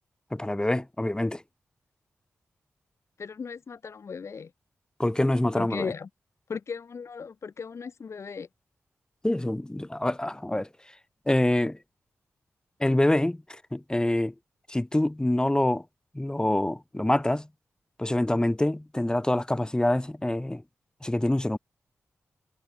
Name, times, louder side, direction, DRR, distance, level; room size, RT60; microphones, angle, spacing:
voice 1, 0.3-1.4 5.0-5.9 9.2-10.7 11.3-11.8 12.8-14.3 14.7-15.8 16.1-17.5 18.0-20.6 21.0-21.6, left 1 dB, 15° left, 5.8 m, -26 dB
voice 2, 3.2-4.5 5.6-6.1 6.5-8.5, left 5 dB, 65° left, 3.7 m, -37 dB
cardioid pair, 50°, 5 cm